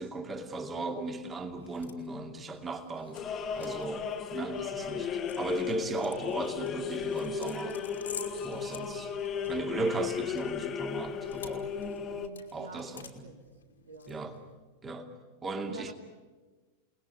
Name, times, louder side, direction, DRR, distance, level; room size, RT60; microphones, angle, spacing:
voice 1, 0.0-3.2 3.6-4.0 4.3-7.8 8.4-9.1 9.5-11.7 12.5-13.3 14.1-14.3 14.8-15.1 15.4-15.9, right 2 dB, 20° right, 2.7 m, -36 dB
sound 1, 1.2-14.6, left 6 dB, 70° left, 2.6 m, -51 dB
sound 2, 3.1-12.3, left 7 dB, 30° left, 1.7 m, -35 dB
voice 2, 12.1-13.5 13.8-14.3 15.7-15.9, right 3 dB, 75° right, 2.0 m, -47 dB
29.0 x 20.0 x 9.8 m
figure-of-eight pair, 90°, 0 cm